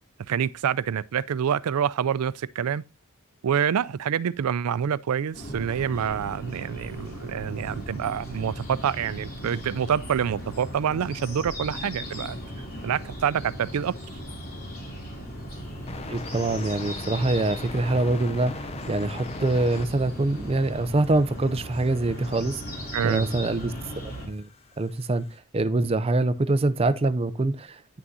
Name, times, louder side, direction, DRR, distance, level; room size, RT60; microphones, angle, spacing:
voice 1, 0.3-2.8 3.4-12.4 12.8-14.0 22.9-23.3, right 8 dB, 90° right, 0.4 m, -27 dB
sound 1, 5.3-24.3, equal, 45° left, 2.8 m, -37 dB
sound 2, 11.8-11.9 15.0-15.1 15.9-25.4, left 3 dB, 30° left, 0.5 m, -42 dB
voice 2, 16.1-22.6 23.0-23.7 24.0-24.5 24.8-25.2 25.5-27.8, right 2 dB, 25° right, 0.5 m, -24 dB
9.3 x 6.1 x 2.6 m
head